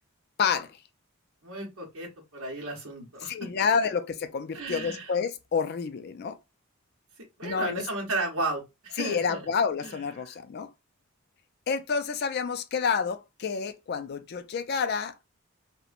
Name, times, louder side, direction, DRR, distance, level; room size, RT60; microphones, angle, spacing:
voice 1, 0.4-0.8 3.2-6.4 7.4-7.8 9.0-10.7 11.7-15.1, left 6 dB, 45° left, 0.3 m, -29 dB
voice 2, 1.4-3.6 4.5-5.1 7.4-9.4 9.8-10.4, right 2 dB, 80° right, 0.9 m, -34 dB
2.8 x 2.1 x 2.4 m
head